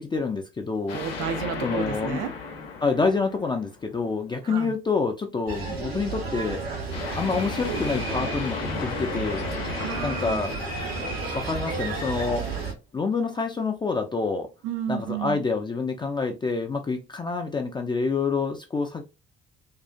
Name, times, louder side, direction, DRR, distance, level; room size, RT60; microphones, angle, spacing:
voice 1, 0.0-1.0 1.6-2.2 2.8-6.9 7.2-9.4 10.0-10.5 11.3-12.5 12.9-14.5 14.9-19.0, left 4 dB, 15° left, 0.3 m, -27 dB
sound 1, 0.9-4.0 6.9-12.1, left 5 dB, 75° left, 0.6 m, -35 dB
voice 2, 0.9-2.3 4.4-4.7 9.5-10.5 14.6-15.5, right 8 dB, 65° right, 0.5 m, -32 dB
sound 2, 5.5-12.7, right 3 dB, 85° right, 1.0 m, -32 dB
2.5 x 2.3 x 2.2 m
figure-of-eight pair, 45°, 29 cm